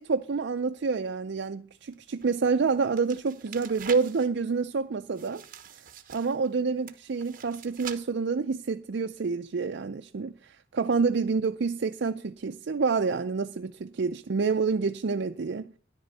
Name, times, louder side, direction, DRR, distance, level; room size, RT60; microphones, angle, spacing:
voice 1, 0.0-5.4 6.1-15.7, right 4 dB, 60° right, 0.5 m, -28 dB
sound 1, 1.8-4.3 5.1-6.5 6.9-8.0, right 8 dB, 45° right, 1.1 m, -44 dB
13.5 x 10.5 x 4.1 m
head